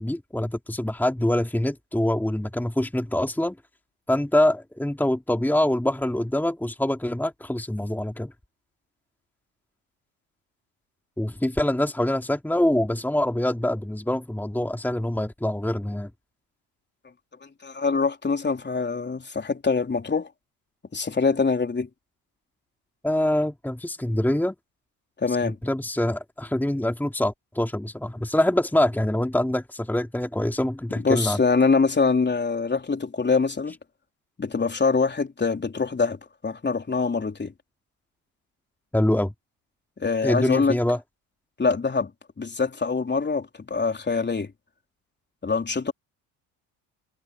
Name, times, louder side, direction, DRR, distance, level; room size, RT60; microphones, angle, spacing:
voice 1, 0.0-3.6 4.1-8.3 11.2-16.1 23.0-24.5 25.3-31.4 38.9-39.3 40.2-41.0, left 1 dB, 5° left, 2.8 m, -25 dB
voice 2, 17.4-20.3 20.9-21.9 25.2-25.6 31.0-33.8 34.4-36.2 36.4-37.5 40.0-40.8 41.6-42.1 42.4-44.5 45.4-45.9, left 4 dB, 25° left, 3.7 m, -24 dB
hypercardioid pair, 65°, 44 cm